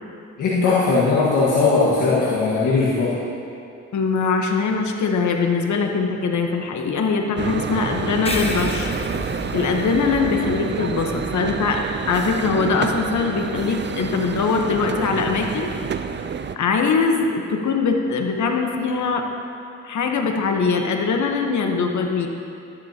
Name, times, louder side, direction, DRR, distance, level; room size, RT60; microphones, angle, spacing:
voice 1, 0.4-3.1, left 4 dB, 90° left, -8 dB, 1.7 m, -19 dB
voice 2, 3.9-8.9 9.5-15.7 16.6-19.3 19.8-22.3, left 4 dB, 70° left, 3 dB, 1.2 m, -22 dB
sound 1, 7.4-16.6, right 6 dB, 40° right, 0.5 m, -28 dB
sound 2, 8.2-13.1, left 2 dB, 20° left, 1.3 m, -33 dB
13.0 x 11.0 x 2.9 m, 2.6 s
cardioid pair, 75°, 30 cm